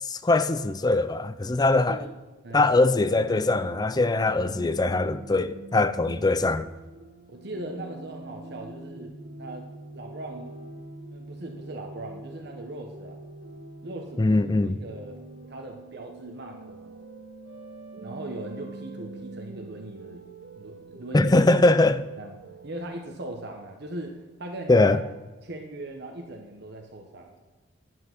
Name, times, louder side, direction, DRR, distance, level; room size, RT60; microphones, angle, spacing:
voice 1, 0.0-2.0 2.5-6.7 14.2-14.8 21.1-22.0 24.7-25.0, left 2 dB, 20° left, 0.5 m, -22 dB
voice 2, 1.7-2.1 2.4-2.8 6.1-6.3 7.3-9.1 9.4-10.6 11.1-13.2 13.8-15.2 15.5-17.0 18.0-20.2 20.6-21.3 22.2-22.4 22.6-25.0 25.4-27.4, right 2 dB, 60° right, 1.1 m, -39 dB
sound 1, 2.9-22.8, right 2 dB, 80° right, 1.8 m, -44 dB
10.5 x 7.7 x 6.0 m
head